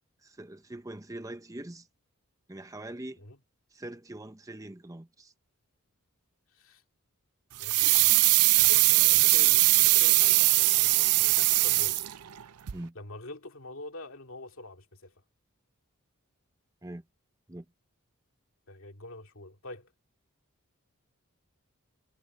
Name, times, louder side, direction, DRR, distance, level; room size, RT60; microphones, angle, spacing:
voice 1, 0.2-1.9 2.5-3.2 3.7-5.3 12.7-13.0 16.8-17.0 17.5-17.7, right 1 dB, 15° right, 0.8 m, -42 dB
voice 2, 6.5-6.8 7.6-12.1 12.9-15.1 18.7-19.9, left 2 dB, 60° left, 2.6 m, -46 dB
sound 1, 7.6-12.4 12.7-12.8, right 19 dB, 90° right, 0.5 m, -21 dB
head